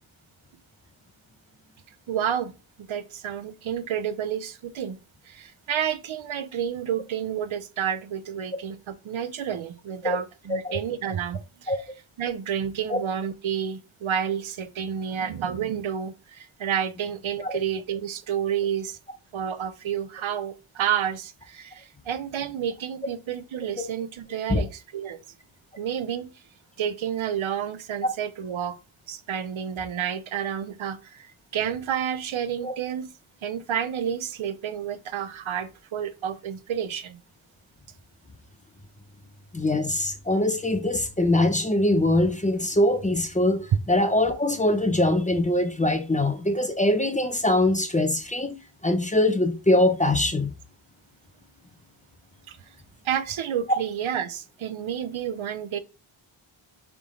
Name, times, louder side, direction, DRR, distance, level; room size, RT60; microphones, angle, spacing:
voice 1, 2.1-2.5 2.9-5.0 5.3-11.8 12.2-19.0 19.3-25.2 25.8-26.3 26.8-28.8 29.1-33.1 33.4-37.2 52.5-52.6 53.0-55.8, right 9 dB, 75° right, 0.8 m, -30 dB
voice 2, 39.5-48.6 48.8-50.5, left 1 dB, 15° left, 0.7 m, -23 dB
7.0 x 3.7 x 3.8 m
wide cardioid pair, 165°, 49 cm